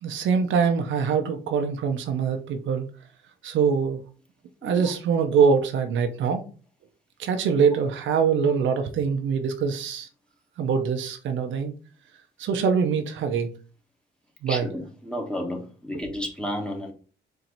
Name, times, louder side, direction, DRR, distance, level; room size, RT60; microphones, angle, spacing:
voice 1, 0.0-2.9 3.4-4.0 4.6-6.4 7.2-10.1 10.6-11.7 12.4-13.5 14.4-14.7, right 6 dB, 75° right, 0.7 m, -23 dB
voice 2, 14.5-16.9, equal, 5° left, 1.2 m, -32 dB
4.5 x 2.8 x 4.0 m
cardioid pair, 90°, 20 cm